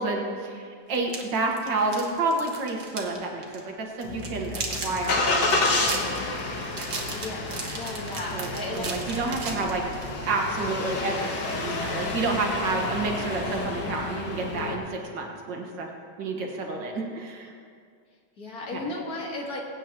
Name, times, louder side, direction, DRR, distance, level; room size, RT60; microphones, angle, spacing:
voice 1, 0.0-6.2 8.3-10.0 10.3-15.9 16.2-17.5 18.7-18.9, right 3 dB, 90° right, 1 dB, 2.1 m, -30 dB
sound 1, 0.9-3.2 3.4-3.6 4.0-10.1, right 3 dB, 45° right, 1.6 m, -36 dB
Engine starting, 4.0-14.8, left 2 dB, 75° left, 2.0 m, -30 dB
voice 2, 7.1-8.9 18.4-19.6, left 2 dB, 55° left, -1 dB, 2.1 m, -35 dB
21.5 x 9.2 x 3.0 m, 2.2 s
omnidirectional pair, 1.9 m